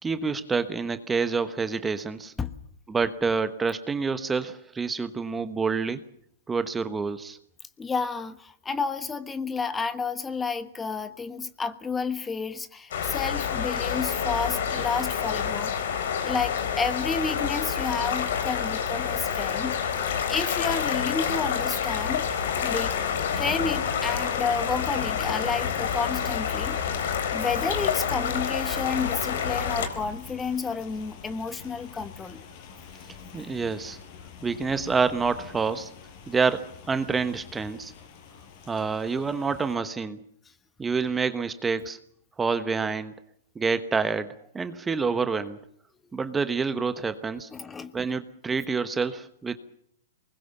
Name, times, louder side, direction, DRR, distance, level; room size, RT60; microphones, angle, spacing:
voice 1, 0.0-2.3 2.9-6.0 6.5-7.4 33.3-34.0 34.4-35.9 36.3-37.9 38.7-40.2 40.8-42.0 42.4-43.1 43.5-45.6 46.1-47.5 47.9-49.5, right 5 dB, 15° right, 11 dB, 1.1 m, -27 dB
voice 2, 7.8-15.9 16.2-19.8 20.3-22.4 22.6-22.9 23.4-26.8 27.1-32.4 47.5-47.9, left 5 dB, 15° left, 12 dB, 1.3 m, -31 dB
sound 1, 12.9-29.9, left 7 dB, 65° left, 3.9 m, -28 dB
sound 2, 20.6-39.8, left 7 dB, 45° left, 5.4 m, -44 dB
23.5 x 20.5 x 7.2 m, 0.68 s
hypercardioid pair, 130°, 0 cm